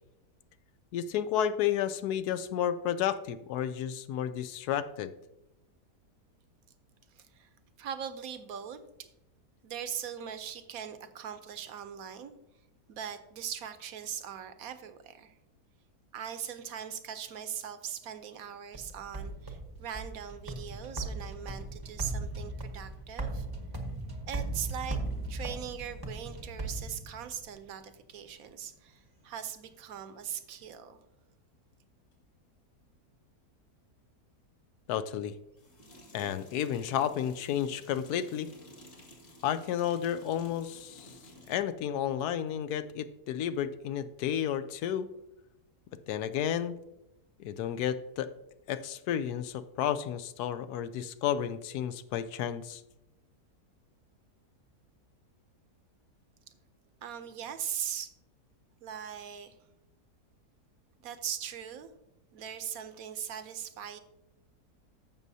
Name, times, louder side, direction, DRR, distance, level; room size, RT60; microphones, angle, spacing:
voice 1, 0.9-5.1 34.9-35.3 36.1-38.5 39.4-41.1 41.5-45.1 46.1-46.8 47.4-48.3 48.7-52.8, left 9 dB, 75° left, 13 dB, 1.1 m, -32 dB
voice 2, 7.2-7.5 7.8-9.1 9.6-12.3 12.9-15.3 16.1-23.5 24.3-25.0 25.3-31.0 57.0-58.1 58.8-59.5 61.0-61.9 62.3-64.0, right 9 dB, 65° right, 10 dB, 1.1 m, -40 dB
sound 1, 18.7-27.5, right 2 dB, 20° right, 0.7 m, -38 dB
sound 2, 32.1-32.2 35.6-41.7, equal, 50° left, 2.3 m, -53 dB
14.5 x 6.3 x 2.7 m, 0.91 s
omnidirectional pair, 1.7 m